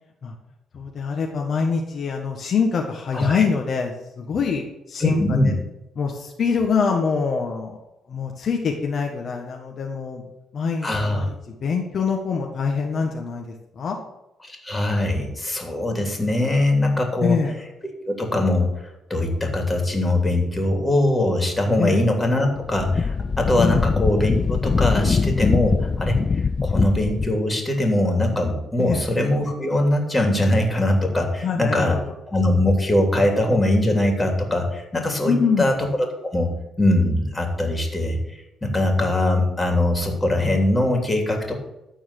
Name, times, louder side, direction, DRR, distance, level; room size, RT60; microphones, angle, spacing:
voice 1, 0.7-5.2 5.4-5.5 6.0-7.8 8.1-10.2 10.5-14.0 17.2-17.5 21.8-22.0 23.6-23.8 28.8-29.0 31.4-32.0 35.2-35.7, left 5 dB, 55° left, 1 dB, 1.6 m, -24 dB
voice 2, 3.1-3.4 5.0-5.5 10.8-11.3 14.4-17.4 18.1-32.0 32.3-35.9 36.3-36.5 36.8-41.6, left 1 dB, 15° left, 3 dB, 3.2 m, -22 dB
Wind, 22.5-27.4, left 5 dB, 35° left, 0.4 m, -22 dB
13.0 x 4.6 x 8.5 m, 0.92 s
cardioid pair, 90°, 0 cm